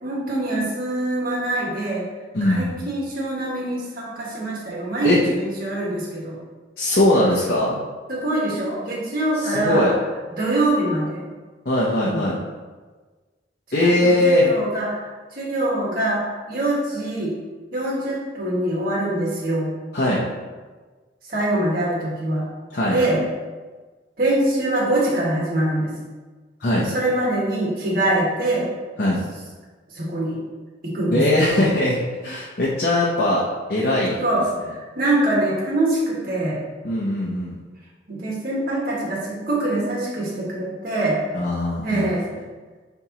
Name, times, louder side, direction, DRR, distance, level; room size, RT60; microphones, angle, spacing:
voice 1, 0.0-2.0 2.4-6.4 8.1-9.9 10.4-11.2 12.0-12.2 13.8-17.3 17.7-19.7 21.3-22.4 22.9-23.2 24.2-25.9 26.8-28.7 29.9-30.4 30.8-31.7 32.3-32.4 34.2-36.6 38.1-41.2 41.8-42.2, right 1 dB, 50° right, -5 dB, 1.7 m, -24 dB
voice 2, 2.3-2.8 5.0-5.2 6.8-7.8 9.4-9.9 11.6-12.4 13.7-14.4 19.9-20.2 22.7-23.0 26.6-26.9 29.0-29.2 31.1-33.4 33.7-34.2 36.8-37.6 41.3-42.1, left 1 dB, 55° left, -5 dB, 1.0 m, -20 dB
9.8 x 3.5 x 3.0 m, 1.4 s
head